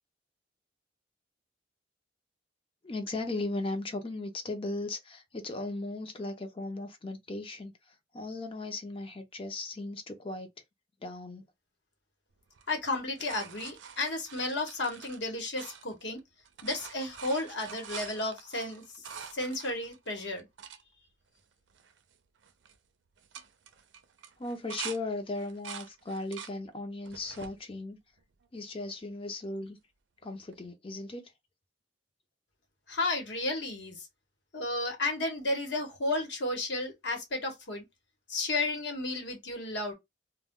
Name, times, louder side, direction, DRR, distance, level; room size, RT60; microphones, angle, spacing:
voice 1, 2.8-10.5 11.0-11.4 24.4-28.0 28.5-29.8 30.2-31.3, left 2 dB, 30° left, 0.6 m, -37 dB
sound 1, 12.5-16.2 16.4-20.8 21.4-21.5 21.7-22.1 22.4-22.8 23.2-25.0 25.4-26.6 27.0-27.6 28.2-28.9 30.5-30.6, right 7 dB, 90° right, 0.5 m, -46 dB
voice 2, 12.7-16.2 16.6-19.1 19.3-20.5 32.9-34.1 34.5-37.8 38.3-39.9, left 2 dB, 70° left, 1.0 m, -33 dB
2.2 x 2.2 x 3.6 m
head